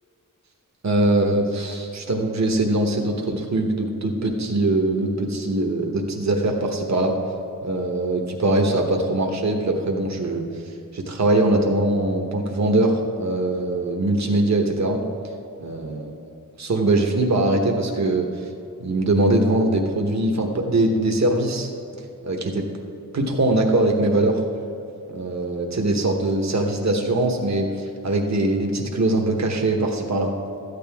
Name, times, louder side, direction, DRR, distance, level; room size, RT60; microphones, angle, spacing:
voice 1, 0.8-7.1 7.6-10.5 10.9-15.0 15.6-16.2 16.6-18.3 18.8-21.7 22.2-22.7 23.1-24.4 25.1-30.3, right 2 dB, 55° right, 2 dB, 1.2 m, -22 dB
13.0 x 9.5 x 3.6 m, 2.5 s
wide cardioid pair, 100°, 33 cm